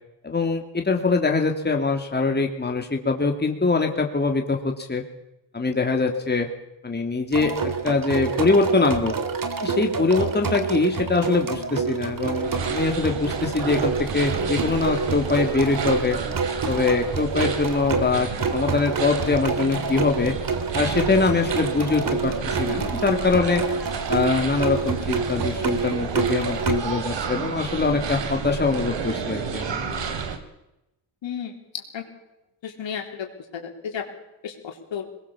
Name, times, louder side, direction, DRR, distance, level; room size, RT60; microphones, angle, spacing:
voice 1, 0.2-5.0 5.5-6.5 6.8-9.1 9.6-16.2 16.7-20.3 20.7-23.6 24.1-29.8, left 3 dB, 20° left, 3 dB, 2.9 m, -23 dB
sound 1, 7.3-26.8, right 5 dB, 45° right, 2.7 m, -27 dB
sound 2, 12.4-30.4, right 5 dB, 65° right, 3.2 m, -31 dB
voice 2, 31.2-31.5 31.9-32.0 32.6-34.0 34.4-35.1, left 8 dB, 70° left, 3 dB, 4.0 m, -33 dB
22.0 x 20.0 x 7.3 m, 0.91 s
cardioid pair, 85°, 47 cm